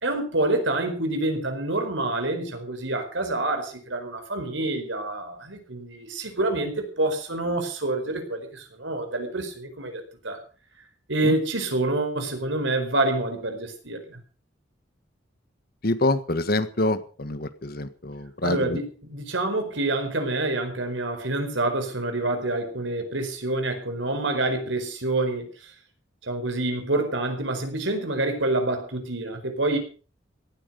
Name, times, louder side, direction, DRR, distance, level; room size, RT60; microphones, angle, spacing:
voice 1, 0.0-10.4 11.1-14.2 18.4-25.7 26.2-29.8, right 2 dB, 80° right, 6 dB, 4.7 m, -27 dB
voice 2, 15.8-18.8, left 2 dB, 50° left, 11 dB, 1.6 m, -26 dB
18.0 x 13.5 x 5.2 m, 0.38 s
head